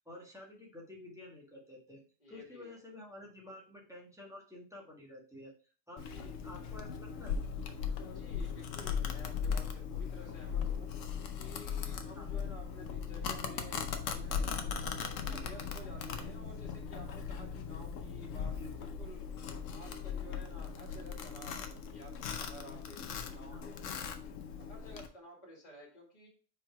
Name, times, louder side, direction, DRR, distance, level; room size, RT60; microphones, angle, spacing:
voice 1, 0.0-2.0 2.3-5.5 5.9-6.0 6.4-7.4 12.1-12.4 18.6-18.7 23.5-23.7, left 1 dB, 5° right, -3 dB, 1.6 m, -50 dB
voice 2, 2.2-2.8 6.1-6.3 8.1-10.9 11.4-14.7 15.1-19.2 19.7-24.1 24.6-26.3, equal, 35° left, -2 dB, 2.2 m, -53 dB
Domestic sounds home sounds, 6.0-25.1, left 6 dB, 75° left, 1.1 m, -38 dB
4.9 x 4.6 x 4.6 m, 0.39 s
omnidirectional pair, 1.3 m